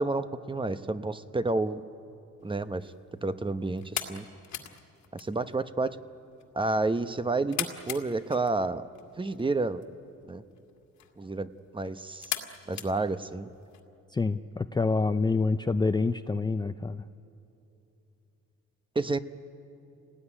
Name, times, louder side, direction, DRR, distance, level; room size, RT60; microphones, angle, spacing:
voice 1, 0.0-1.8 2.4-2.9 3.2-4.2 5.1-6.0 6.5-8.9 9.2-9.8 10.3-10.4 11.2-11.5 11.7-12.3 12.7-13.5 18.9-19.2, right 3 dB, 15° right, 11 dB, 0.9 m, -30 dB
sound 1, 2.4-13.8, left 9 dB, 70° left, 2.1 m, -42 dB
voice 2, 14.1-17.0, left 3 dB, 15° left, 9 dB, 0.5 m, -27 dB
26.5 x 19.0 x 9.9 m, 2.9 s
cardioid pair, 90°, 30 cm